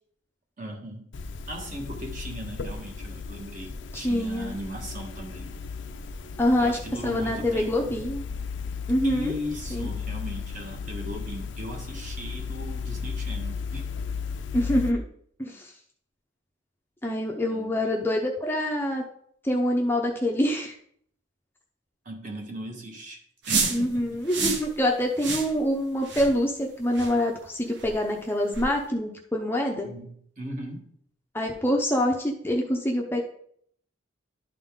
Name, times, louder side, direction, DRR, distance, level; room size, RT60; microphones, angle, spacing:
voice 1, 0.6-1.1 1.5-5.5 6.6-8.0 9.0-13.9 17.5-17.9 22.0-24.2 29.8-30.9, equal, 40° right, 1 dB, 1.4 m, -38 dB
sound 1, 1.1-14.9, left 5 dB, 65° left, 0.5 m, -35 dB
voice 2, 3.9-4.5 6.4-8.2 8.9-9.4 9.7-9.9 14.5-15.0 15.4-15.7 17.0-19.0 19.4-20.7 23.7-29.9 31.3-33.2, left 1 dB, 10° left, 0 dB, 0.6 m, -25 dB
sound 2, 23.4-23.8 24.3-24.7 25.2-25.5 26.0-26.3 26.9-27.1 27.8-27.9 28.5-28.7, right 4 dB, 60° right, 0.9 m, -28 dB
11.5 x 3.9 x 3.6 m, 0.66 s
head